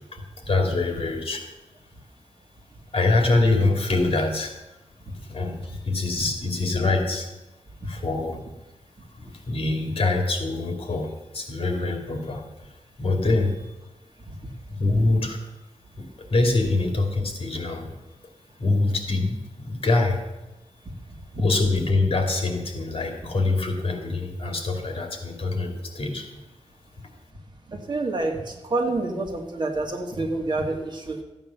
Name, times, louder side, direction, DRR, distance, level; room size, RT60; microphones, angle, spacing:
voice 1, 0.5-1.5 2.9-4.6 5.2-7.3 7.8-8.4 9.1-12.7 13.0-13.8 14.8-15.4 16.0-17.9 18.6-20.2 21.4-26.3 27.0-27.1, left 2 dB, 55° left, 3 dB, 2.4 m, -24 dB
voice 2, 27.7-31.2, right 2 dB, 40° right, 1 dB, 2.3 m, -28 dB
14.0 x 9.1 x 7.0 m, 1.0 s
wide cardioid pair, 150°, 12 cm